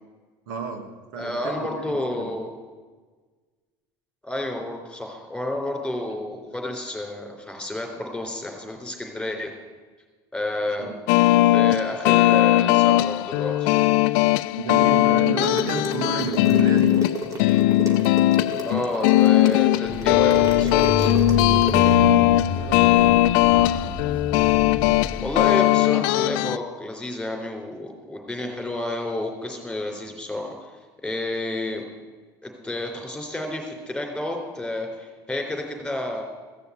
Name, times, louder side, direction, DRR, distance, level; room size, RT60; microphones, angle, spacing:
voice 1, 0.5-2.3 10.8-11.0 14.6-17.0 22.0-23.1, right 5 dB, 75° right, 5 dB, 1.7 m, -32 dB
voice 2, 1.2-2.5 4.2-9.5 10.3-10.9 11.5-13.7 18.6-21.1 25.2-30.6 31.0-31.8 32.4-36.2, left 1 dB, 5° left, 2 dB, 3.7 m, -30 dB
sound 1, 11.1-26.6, left 16 dB, 75° left, 0.4 m, -19 dB
sound 2, 15.3-21.9, right 3 dB, 30° right, 2.3 m, -33 dB
sound 3, 19.8-25.5, equal, 15° right, 3.4 m, -30 dB
15.5 x 6.9 x 8.1 m, 1.4 s
supercardioid pair, 90°, 11 cm